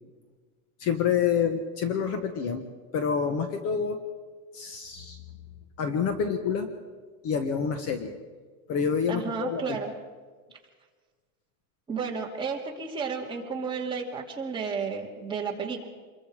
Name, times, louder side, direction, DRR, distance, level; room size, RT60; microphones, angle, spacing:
voice 1, 0.8-2.6 2.9-4.0 4.5-5.2 5.8-6.7 7.2-8.1 8.7-9.8, left 6 dB, 35° left, 8 dB, 1.2 m, -27 dB
voice 2, 9.1-9.9 11.9-15.9, right 5 dB, 10° right, -2 dB, 2.4 m, -32 dB
27.0 x 22.0 x 4.9 m, 1.5 s
supercardioid pair, 170°, 44 cm